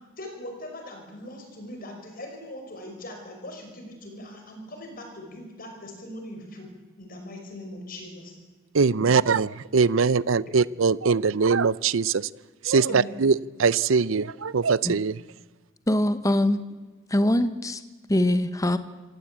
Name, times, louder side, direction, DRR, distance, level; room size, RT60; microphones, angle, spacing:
voice 1, 0.2-6.7 7.0-8.3 9.0-9.1 10.5-10.6 12.9-13.2, left 1 dB, 45° left, 3 dB, 5.7 m, -40 dB
voice 2, 8.7-12.2 12.6-15.2, right 5 dB, 80° right, 20 dB, 0.6 m, -22 dB
voice 3, 15.9-16.6 17.1-17.8 18.1-18.8, left 1 dB, 15° left, 11 dB, 1.0 m, -22 dB
27.0 x 16.5 x 8.6 m, 1.3 s
head